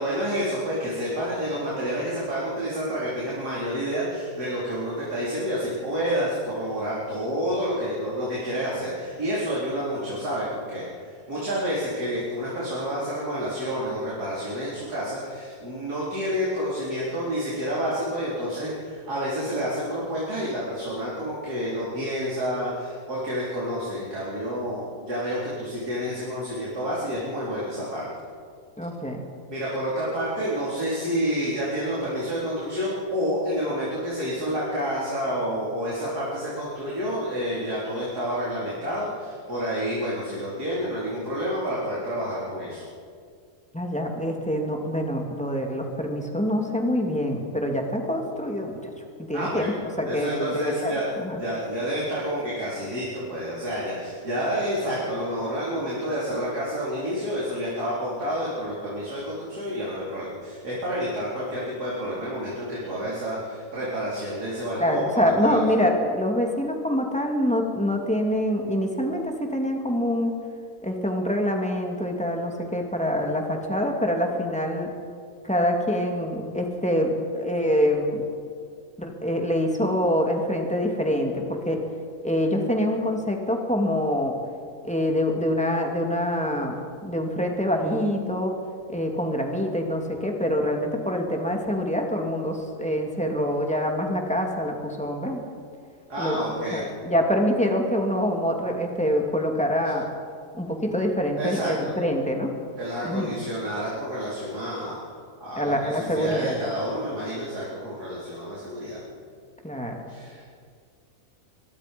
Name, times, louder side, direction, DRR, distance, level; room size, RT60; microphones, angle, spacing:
voice 1, 0.0-28.1 29.5-42.8 49.3-49.8 50.1-65.6 96.1-96.8 101.4-101.9 102.8-105.1 105.4-109.0 110.1-110.5, equal, 85° right, -7 dB, 4.8 m, -29 dB
voice 2, 28.8-29.2 43.7-48.7 49.2-49.7 50.0-50.9 51.2-51.4 64.8-70.3 70.8-74.9 75.4-78.2 79.0-81.8 82.2-84.4 84.8-88.5 88.9-95.5 96.2-100.1 100.5-102.5 103.0-103.4 105.6-106.6 109.6-110.1, equal, 5° left, 1 dB, 2.6 m, -25 dB
23.0 x 22.5 x 5.4 m, 2.2 s
omnidirectional pair, 1.6 m